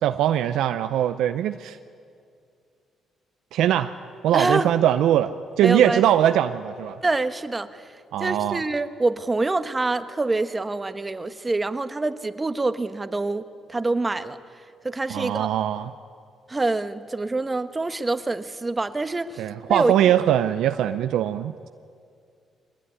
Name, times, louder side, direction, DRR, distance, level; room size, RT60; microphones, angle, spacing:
voice 1, 0.0-1.8 3.5-3.9 4.2-5.3 5.6-7.0 8.1-8.6 15.1-15.9 19.4-21.7, right 11 dB, 85° right, 9 dB, 0.6 m, -21 dB
voice 2, 4.3-4.7 5.6-6.0 7.0-7.9 8.2-13.4 13.7-14.4 14.8-15.5 16.5-19.4 19.7-19.9, right 2 dB, 20° right, 10 dB, 1.2 m, -25 dB
23.5 x 19.0 x 9.8 m, 2.3 s
cardioid pair, 90°, 0 cm